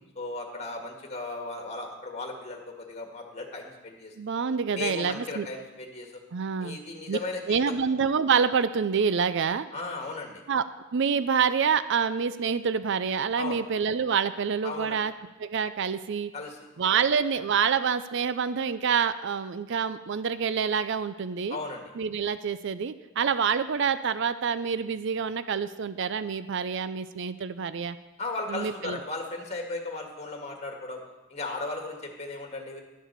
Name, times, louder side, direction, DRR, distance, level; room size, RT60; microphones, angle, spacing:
voice 1, 0.1-4.1 4.7-6.2 6.6-7.8 9.7-10.4 13.3-13.6 14.6-15.0 16.3-16.6 16.9-17.0 21.5-21.9 28.2-31.0 31.3-32.8, left 3 dB, 30° left, 2 dB, 1.8 m, -36 dB
voice 2, 4.2-5.5 6.3-6.8 7.1-7.2 7.5-9.7 10.5-10.6 10.9-15.1 15.4-16.3 16.8-21.6 22.0-28.0 28.5-29.0, right 6 dB, 60° right, 13 dB, 0.5 m, -27 dB
12.0 x 7.6 x 6.6 m, 1.1 s
head